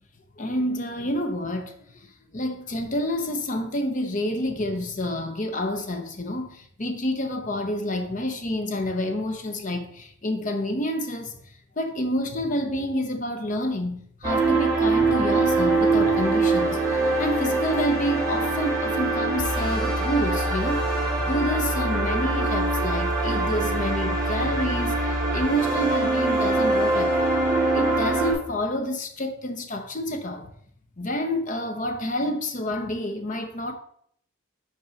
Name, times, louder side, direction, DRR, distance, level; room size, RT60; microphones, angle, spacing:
voice 1, 0.4-1.7 2.3-11.3 11.8-27.3 27.7-30.5 31.0-33.7, left 1 dB, 40° left, 0.9 m, -28 dB
sound 1, 14.2-28.3, right 2 dB, 20° right, 2.3 m, -23 dB
5.5 x 4.6 x 5.2 m
head